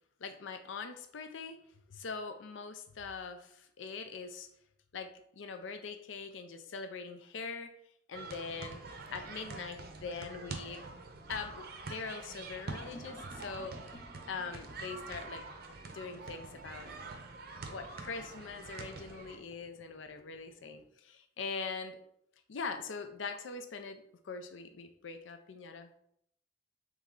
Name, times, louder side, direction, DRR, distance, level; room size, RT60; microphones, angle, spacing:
voice 1, 0.2-1.6 1.9-4.5 4.9-7.7 8.1-8.8 9.1-10.8 11.3-15.4 15.9-16.9 17.6-22.0 22.5-25.9, left 4 dB, 85° left, 8 dB, 0.5 m, -42 dB
sound 1, 8.1-19.4, right 3 dB, 55° right, 0.6 m, -45 dB
sound 2, 12.7-15.4 17.7-20.9, left 1 dB, 30° left, 0.4 m, -57 dB
3.5 x 3.2 x 3.6 m, 0.70 s
head